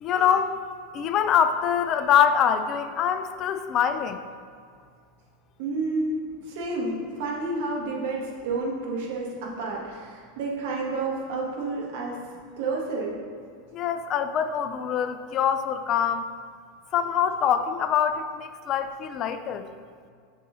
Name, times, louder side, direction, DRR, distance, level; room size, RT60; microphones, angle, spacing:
voice 1, 0.0-0.5 0.9-4.2 13.7-16.3 16.9-19.7, left 8 dB, 40° left, 10 dB, 0.3 m, -24 dB
voice 2, 5.6-6.2 6.5-12.2 12.6-13.2, right 3 dB, 60° right, -2 dB, 1.3 m, -30 dB
7.5 x 6.0 x 2.5 m, 2.1 s
figure-of-eight pair, 85°, 0 cm